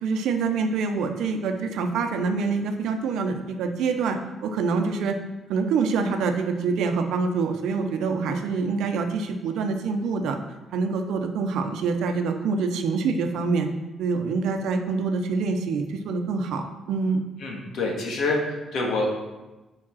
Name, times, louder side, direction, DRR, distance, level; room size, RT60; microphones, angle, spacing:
voice 1, 0.0-5.2 5.5-10.4 10.7-13.7 14.0-17.2, right 4 dB, 85° right, 5 dB, 0.7 m, -26 dB
voice 2, 17.4-19.1, left 2 dB, 75° left, -1 dB, 1.7 m, -26 dB
5.2 x 4.8 x 6.1 m, 1.1 s
cardioid pair, 90°, 0 cm